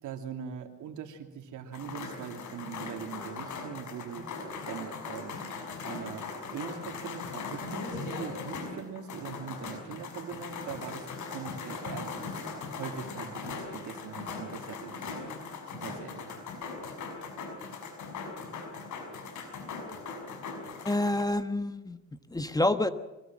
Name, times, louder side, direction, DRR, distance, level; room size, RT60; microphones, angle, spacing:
voice 1, 0.0-4.3 4.7-5.4 5.8-11.0 11.3-15.3 15.7-16.4, right 8 dB, 80° right, 6 dB, 2.9 m, -41 dB
sound 1, 1.7-21.2, left 4 dB, 75° left, 5.8 m, -39 dB
voice 2, 20.8-22.0 22.3-22.9, left 1 dB, 10° left, 11 dB, 1.3 m, -27 dB
24.5 x 20.0 x 7.6 m, 1.1 s
cardioid pair, 90°, 30 cm